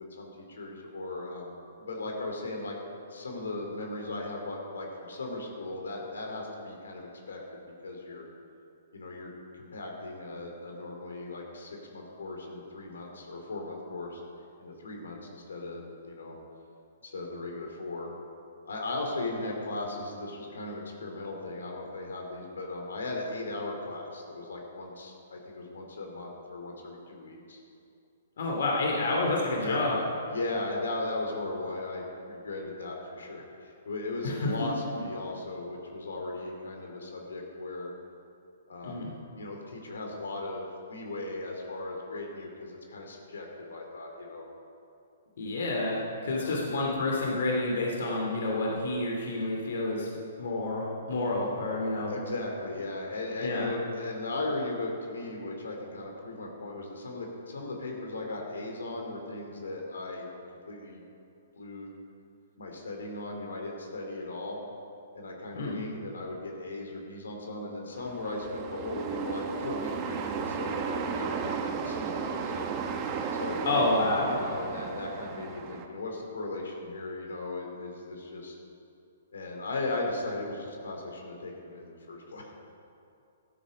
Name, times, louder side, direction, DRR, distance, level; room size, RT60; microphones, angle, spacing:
voice 1, 0.0-2.7 3.1-7.4 7.8-8.2 8.9-14.2 14.6-16.4 17.0-18.1 18.6-27.6 28.8-28.9 29.6-37.9 38.7-39.0 39.3-44.4 46.4-46.6 52.1-60.3 60.6-61.0 61.5-61.9 62.6-64.6 65.1-72.7 73.3-73.6 74.2-78.6 79.3-82.5, left 2 dB, 90° left, 1 dB, 3.0 m, -37 dB
voice 2, 28.4-29.9 34.2-34.5 38.8-39.1 45.4-50.1 50.4-52.1 53.4-53.7 65.5-65.8 73.7-74.4, left 2 dB, 70° left, -2 dB, 2.5 m, -29 dB
sound 1, 68.0-75.9, right 5 dB, 30° right, 1.1 m, -34 dB
13.5 x 12.0 x 5.3 m, 2.6 s
hypercardioid pair, 145°, 0 cm